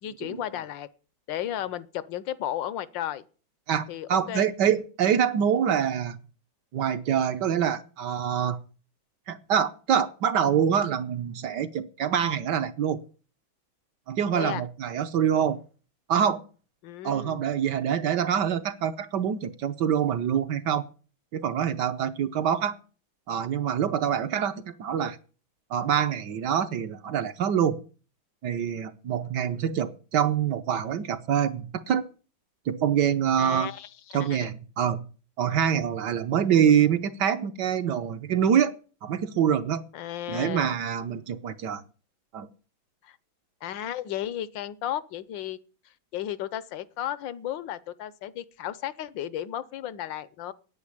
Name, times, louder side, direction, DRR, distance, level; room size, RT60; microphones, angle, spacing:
voice 1, 0.0-0.9 1.3-3.2 3.9-4.5 14.3-14.6 16.8-17.4 33.4-34.5 39.9-40.7 43.0-43.2 43.6-45.6 46.1-50.5, left 11 dB, 75° left, 1.5 m, -34 dB
voice 2, 3.7-6.2 6.7-8.6 9.3-13.0 14.1-15.6 16.1-16.4 17.0-20.8 21.3-22.7 23.3-25.2 25.7-27.8 28.4-32.0 32.7-33.7 34.1-35.1 35.4-38.7 39.0-39.9 40.3-41.8 42.3-42.5, right 8 dB, 65° right, 1.4 m, -25 dB
9.7 x 8.8 x 9.9 m
omnidirectional pair, 2.1 m